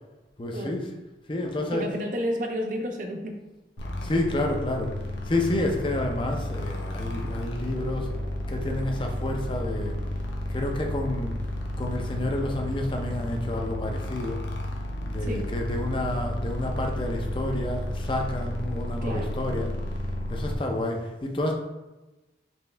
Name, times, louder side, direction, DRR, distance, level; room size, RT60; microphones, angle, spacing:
voice 1, 0.4-0.9 1.3-1.9 4.0-5.0 5.3-8.1 8.5-9.9 10.5-11.3 11.8-14.4 15.0-19.7 20.3-21.5, left 1 dB, 30° left, 2 dB, 0.5 m, -29 dB
voice 2, 1.7-3.4 15.2-15.5 19.0-19.3, equal, 45° right, 4 dB, 0.5 m, -31 dB
sound 1, 3.8-20.6, left 1 dB, 85° left, 0.8 m, -32 dB
4.4 x 3.2 x 3.3 m, 1.1 s
head